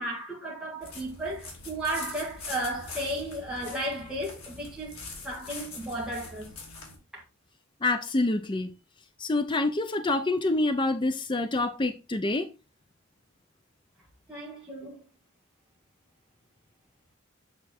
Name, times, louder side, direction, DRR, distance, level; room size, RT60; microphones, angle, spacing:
voice 1, 0.0-5.0 5.2-6.5 7.1-7.2 14.3-15.0, right 1 dB, 5° right, 1.8 m, -34 dB
sound 1, 0.8-7.0, left 3 dB, 80° left, 2.9 m, -43 dB
voice 2, 7.8-8.7 9.2-12.5, left 2 dB, 20° left, 0.5 m, -27 dB
8.3 x 3.6 x 4.2 m
head